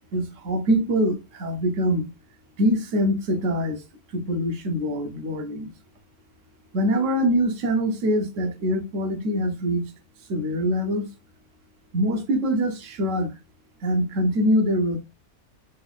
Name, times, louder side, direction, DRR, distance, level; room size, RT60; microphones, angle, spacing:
voice 1, 0.1-2.1 2.6-3.8 4.1-5.7 6.7-9.9 10.3-11.1 11.9-13.3 13.8-15.0, equal, 60° right, 1.1 m, -24 dB
3.9 x 3.2 x 2.4 m
omnidirectional pair, 1.6 m